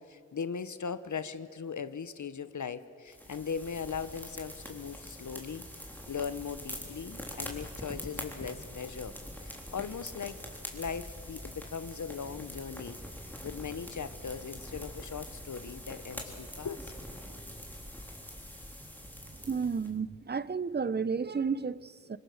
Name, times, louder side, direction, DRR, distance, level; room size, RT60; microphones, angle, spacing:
voice 1, 0.0-5.6 6.1-10.4 10.7-13.0 13.4-16.9, left 6 dB, 65° left, 0.8 m, -39 dB
sound 1, 3.1-19.9, equal, 5° left, 3.6 m, -44 dB
voice 2, 19.3-22.2, right 5 dB, 30° right, 0.6 m, -32 dB
26.0 x 21.0 x 6.4 m
wide cardioid pair, 60°, 32 cm